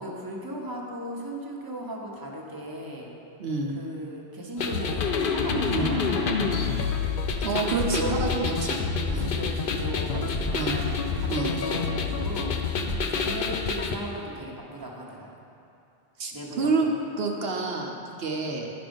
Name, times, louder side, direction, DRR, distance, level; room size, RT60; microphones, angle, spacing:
voice 1, 0.0-3.1 3.7-6.5 7.5-8.4 9.1-12.6 13.1-15.3 16.3-16.9 18.4-18.6, right 1 dB, 20° right, -2 dB, 1.1 m, -37 dB
voice 2, 3.4-3.7 5.7-5.9 7.4-8.8 9.1-9.3 10.5-10.8 11.3-11.6 16.2-18.7, right 3 dB, 75° right, 1 dB, 1.0 m, -28 dB
sound 1, 4.6-13.9, left 5 dB, 60° left, 0.8 m, -27 dB
11.5 x 5.1 x 5.3 m, 2.7 s
omnidirectional pair, 1.0 m